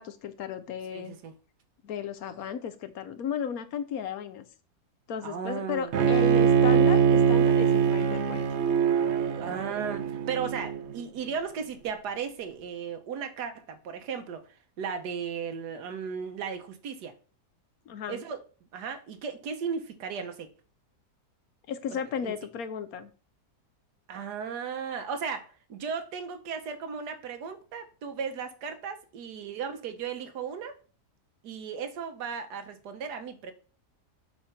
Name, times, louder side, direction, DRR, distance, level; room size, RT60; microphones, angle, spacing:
voice 1, 0.0-1.2 1.8-4.4 5.1-8.4 17.9-18.2 21.7-23.1, left 7 dB, 65° left, 1.1 m, -34 dB
voice 2, 0.9-1.3 5.2-6.3 9.4-14.4 14.8-17.1 18.1-18.4 18.7-20.5 21.9-22.3 24.1-30.7 31.4-33.5, right 6 dB, 80° right, 1.5 m, -36 dB
Bowed string instrument, 5.9-11.0, right 7 dB, 60° right, 0.7 m, -23 dB
7.8 x 3.4 x 5.6 m
omnidirectional pair, 1.8 m